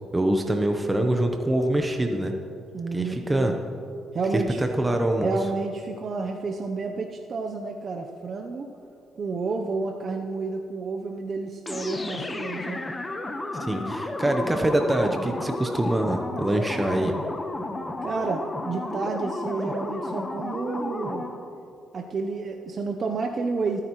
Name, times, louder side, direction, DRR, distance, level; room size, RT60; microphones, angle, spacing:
voice 1, 0.1-2.3 2.9-3.5 4.3-4.4 4.8-5.4 13.6-17.1, right 1 dB, 15° right, 3 dB, 0.9 m, -24 dB
voice 2, 2.7-3.6 4.1-4.7 5.2-8.7 9.2-12.8 18.0-21.3 21.9-23.8, right 4 dB, 50° right, 3 dB, 0.8 m, -30 dB
sound 1, 11.7-21.5, left 2 dB, 20° left, 1.1 m, -32 dB
25.0 x 9.8 x 3.1 m, 2.7 s
cardioid pair, 90°, 0 cm